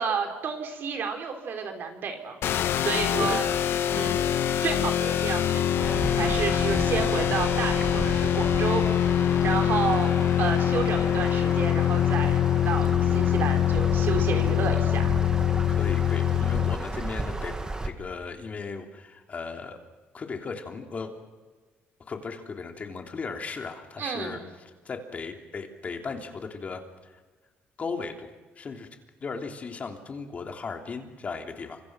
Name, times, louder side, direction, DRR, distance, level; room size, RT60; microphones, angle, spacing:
voice 1, 0.0-2.4 2.8-3.4 3.9-4.3 4.6-5.9 6.2-8.8 9.4-15.1 24.0-24.4, right 6 dB, 55° right, 4 dB, 4.7 m, -31 dB
sound 1, 2.4-16.7, left 10 dB, 65° left, 1.3 m, -24 dB
voice 2, 3.1-3.6 15.7-17.6 17.8-19.8 20.1-21.1 22.0-24.4 24.8-26.8 27.8-28.9 29.2-31.8, left 4 dB, 35° left, 4 dB, 3.1 m, -36 dB
sound 2, 5.8-17.9, right 2 dB, 15° right, 2.2 m, -34 dB
29.0 x 26.0 x 6.2 m, 1.3 s
cardioid pair, 130°, 4 cm